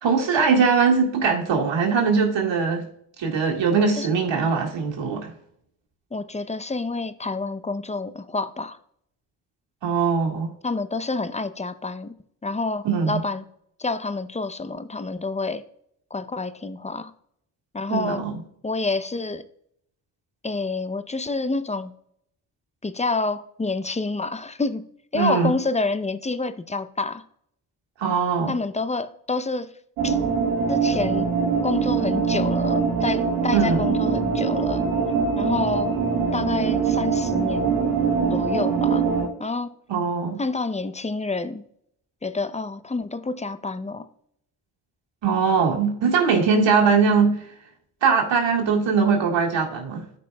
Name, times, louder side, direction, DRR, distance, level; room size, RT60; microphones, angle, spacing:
voice 1, 0.0-2.8 3.2-5.3 9.8-10.5 12.8-13.2 17.9-18.4 25.1-25.5 28.0-28.5 33.5-33.9 39.9-40.4 45.2-47.4 48.0-50.0, right 5 dB, 65° right, 1 dB, 2.1 m, -21 dB
voice 2, 6.1-8.8 10.6-12.1 12.4-13.5 13.8-15.6 16.1-17.1 17.7-18.2 18.6-19.5 20.4-21.9 22.8-24.8 25.1-27.2 28.5-29.7 30.0-30.2 30.7-31.3 31.6-34.9 35.3-35.9 36.3-37.8 38.3-39.0 39.4-39.7 40.4-41.6 42.2-44.1, left 3 dB, 15° left, 13 dB, 0.6 m, -28 dB
sound 1, 30.0-39.3, right 5 dB, 90° right, 1.3 m, -23 dB
13.0 x 5.3 x 2.3 m, 0.70 s
hypercardioid pair, 40°, 47 cm